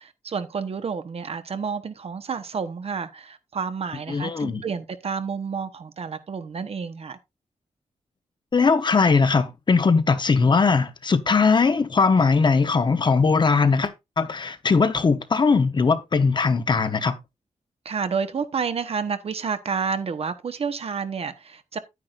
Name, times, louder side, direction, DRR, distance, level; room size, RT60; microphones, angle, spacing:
voice 1, 0.0-7.2 17.8-21.8, right 6 dB, 55° right, 1.1 m, -30 dB
voice 2, 4.1-4.6 8.5-17.2, left 4 dB, 40° left, 1.0 m, -20 dB
10.5 x 9.5 x 2.5 m
wide cardioid pair, 135°, 12 cm